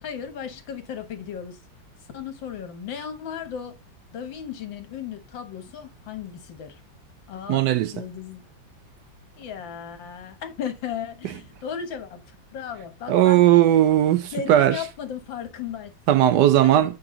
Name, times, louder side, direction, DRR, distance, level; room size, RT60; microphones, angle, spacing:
voice 1, 0.0-1.6 2.1-3.7 4.1-6.8 7.3-7.7 7.9-8.4 9.4-13.4 14.3-16.3 16.6-17.0, left 8 dB, 75° left, 2.0 m, -35 dB
voice 2, 7.5-7.9 13.1-14.8 16.1-16.9, right 12 dB, 75° right, 1.1 m, -17 dB
8.5 x 5.4 x 3.8 m
omnidirectional pair, 2.1 m